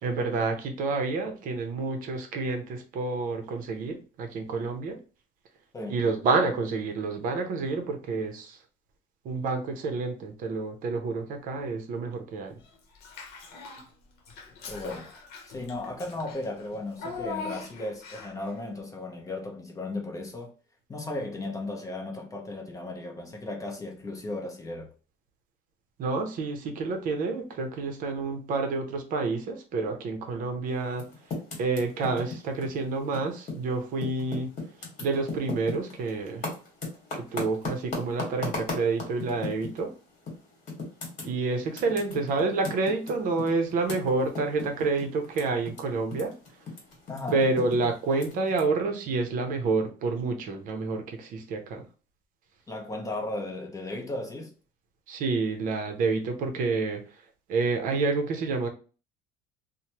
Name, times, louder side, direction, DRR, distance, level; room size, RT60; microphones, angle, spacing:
voice 1, 0.0-5.0 5.9-8.6 9.2-12.6 26.0-31.0 31.6-34.5 35.0-36.4 37.1-39.9 41.2-46.3 47.3-51.8 55.1-57.0 57.5-58.7, right 3 dB, 50° right, 0.7 m, -28 dB
Child speech kid speaking / Bathtub (filling or washing), 12.9-13.9 14.2-18.5, left 4 dB, 65° left, 0.8 m, -40 dB
voice 2, 14.7-15.1 15.5-20.5 20.9-24.9 47.1-47.4 52.7-54.5, left 2 dB, 20° left, 0.6 m, -35 dB
Typing, 30.9-33.7 34.0-39.8 40.3-40.4 40.7-45.8 46.1-48.6, left 3 dB, 40° left, 1.3 m, -36 dB
3.1 x 2.1 x 2.8 m
cardioid pair, 150°, 18 cm